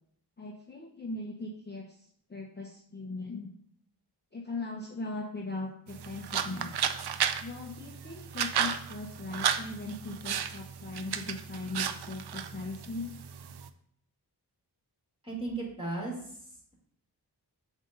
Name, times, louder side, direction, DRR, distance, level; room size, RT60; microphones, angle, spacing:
voice 1, 0.4-3.5 4.3-6.8 7.4-13.1, left 2 dB, 25° left, -1 dB, 0.7 m, -39 dB
sound 1, 5.9-13.7, right 8 dB, 70° right, 0.5 m, -34 dB
voice 2, 15.2-16.7, right 2 dB, 15° right, -3 dB, 2.7 m, -36 dB
7.4 x 2.8 x 5.2 m, 0.65 s
wide cardioid pair, 80°, 41 cm